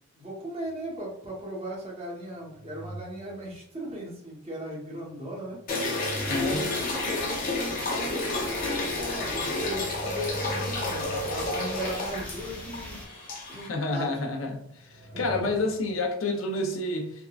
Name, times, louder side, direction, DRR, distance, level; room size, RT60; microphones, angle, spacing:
voice 1, 0.1-5.6 6.2-8.2 8.9-13.0 13.5-14.2 15.1-15.5, right 1 dB, 30° right, -4 dB, 1.0 m, -37 dB
sound 1, 0.7-1.0 2.1-3.7 5.1-7.4 8.1-13.2 14.4-16.2, right 2 dB, 55° right, 0.7 m, -44 dB
sound 2, 5.7-13.7, left 2 dB, 45° left, 0.7 m, -31 dB
sound 3, 6.1-13.0, equal, 5° left, 0.6 m, -43 dB
voice 2, 6.3-6.7 13.7-14.6 15.2-17.1, left 2 dB, 85° left, 3 dB, 0.6 m, -28 dB
3.6 x 2.2 x 2.3 m, 0.68 s
head